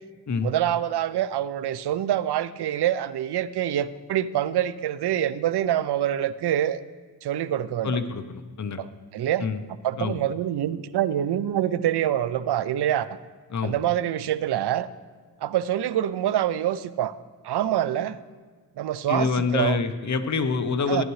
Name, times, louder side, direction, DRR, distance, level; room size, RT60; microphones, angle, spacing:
voice 1, 0.4-6.8 7.2-8.0 9.1-9.5 9.8-13.1 13.6-14.9 15.4-17.1 17.4-18.2 18.8-19.8 20.9-21.0, right 11 dB, 75° right, 15 dB, 0.5 m, -25 dB
voice 2, 7.8-8.8 9.4-9.6 10.0-10.2 13.5-13.8 19.1-21.0, left 4 dB, 45° left, 9 dB, 0.7 m, -26 dB
14.0 x 10.0 x 3.2 m, 1.5 s
wide cardioid pair, 105°, 40 cm